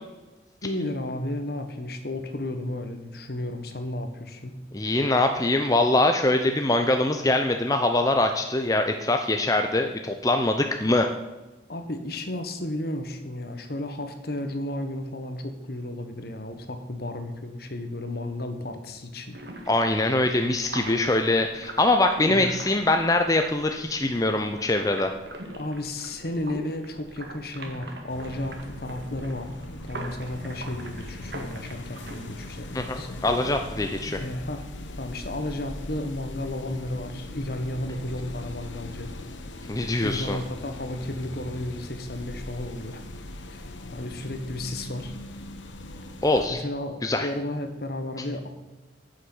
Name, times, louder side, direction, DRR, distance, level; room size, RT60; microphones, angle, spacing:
voice 1, 0.6-4.6 11.7-19.4 22.3-22.5 25.5-33.2 34.2-34.7 35.0-39.1 39.8-43.0 43.4-45.2 46.5-48.5, left 1 dB, 55° left, 7 dB, 1.3 m, -33 dB
voice 2, 4.7-11.1 19.7-25.1 32.7-34.2 39.7-40.4 46.2-46.6 47.0-47.3, left 2 dB, 20° left, 5 dB, 0.6 m, -23 dB
sound 1, 19.3-32.6, right 1 dB, 60° right, 1.9 m, -42 dB
sound 2, 28.1-46.5, left 1 dB, 80° left, 1.1 m, -40 dB
10.0 x 6.5 x 7.9 m, 1.2 s
head